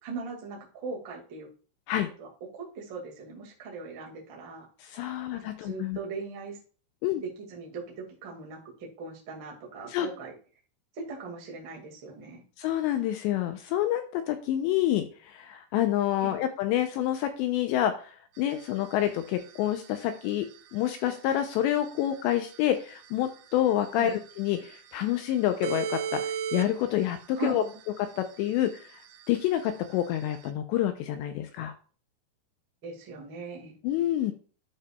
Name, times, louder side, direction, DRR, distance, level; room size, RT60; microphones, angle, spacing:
voice 1, 0.0-1.5 2.2-4.7 5.3-6.6 7.2-10.3 10.9-12.4 16.2-16.4 24.0-24.2 27.4-27.8 32.8-33.8, right 4 dB, 50° right, -1 dB, 1.4 m, -40 dB
voice 2, 4.8-6.0 7.0-7.2 9.9-10.1 12.6-27.6 28.0-29.0 29.3-31.7 33.8-34.3, left 12 dB, 85° left, 8 dB, 2.6 m, -28 dB
sound 1, 18.4-30.5, right 8 dB, 85° right, 3.2 m, -39 dB
12.0 x 5.6 x 2.3 m, 0.39 s
omnidirectional pair, 5.6 m